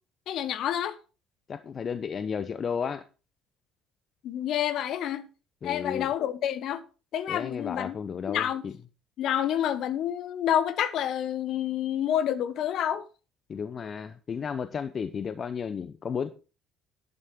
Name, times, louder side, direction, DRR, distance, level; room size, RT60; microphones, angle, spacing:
voice 1, 0.3-0.9 4.2-5.3 5.6-6.8 7.1-8.0 8.3-8.6 9.2-13.0, left 10 dB, 55° left, 1.3 m, -28 dB
voice 2, 1.5-3.0 5.6-6.1 7.3-8.8 13.5-16.3, left 6 dB, 40° left, 0.9 m, -33 dB
11.0 x 10.5 x 4.6 m
hypercardioid pair, 55°, 0 cm